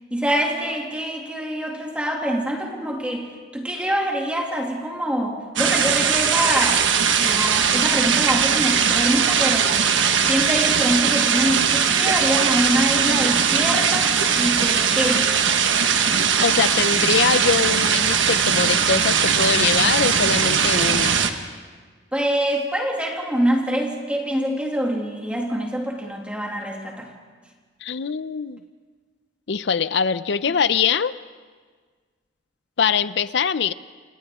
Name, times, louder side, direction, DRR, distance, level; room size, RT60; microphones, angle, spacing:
voice 1, 0.1-6.8 7.2-9.7 10.3-15.3 22.1-27.1, equal, 5° right, 0 dB, 2.4 m, -25 dB
sound 1, 5.6-21.3, right 7 dB, 80° right, 1.4 m, -20 dB
voice 2, 16.4-21.2 27.8-28.6 29.5-31.2 32.8-33.7, left 6 dB, 65° left, 15 dB, 0.5 m, -22 dB
29.5 x 27.5 x 3.6 m, 1.5 s
head